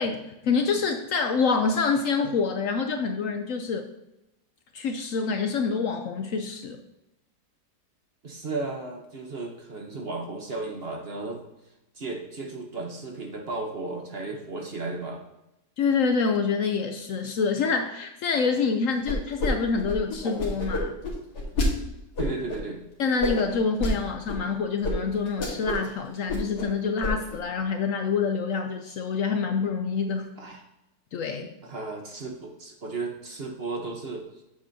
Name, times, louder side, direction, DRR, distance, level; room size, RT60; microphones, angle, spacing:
voice 1, 0.0-3.9 4.7-6.8 15.8-20.9 23.0-30.3 31.1-31.5, left 5 dB, 65° left, 5 dB, 0.9 m, -26 dB
voice 2, 8.2-11.4 11.9-15.2 22.2-22.8 30.4-30.6 31.6-34.4, right 3 dB, 45° right, 2 dB, 1.1 m, -34 dB
sound 1, 19.1-19.5 19.7-21.7 22.2-22.6 23.2-23.9 24.3-24.4 24.8-24.9 25.2-25.9 26.1-26.7 27.0-27.4, left 1 dB, 85° left, 2.3 m, -28 dB
8.4 x 7.9 x 2.7 m, 0.92 s
omnidirectional pair, 1.7 m